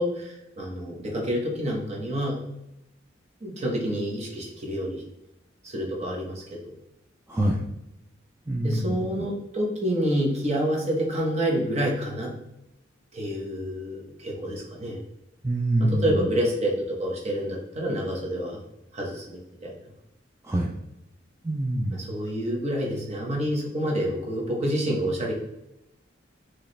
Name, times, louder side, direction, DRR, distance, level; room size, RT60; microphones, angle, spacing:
voice 1, 0.0-2.4 3.4-5.0 5.6-6.7 7.4-7.8 8.6-12.3 13.1-15.0 15.8-18.6 18.9-19.8 21.9-25.3, equal, 35° right, -2 dB, 1.1 m, -28 dB
voice 2, 7.3-7.6 8.5-9.0 15.4-16.2 20.4-20.8 21.4-22.0, right 1 dB, 15° right, -2 dB, 0.4 m, -25 dB
4.7 x 3.1 x 3.2 m, 0.86 s
head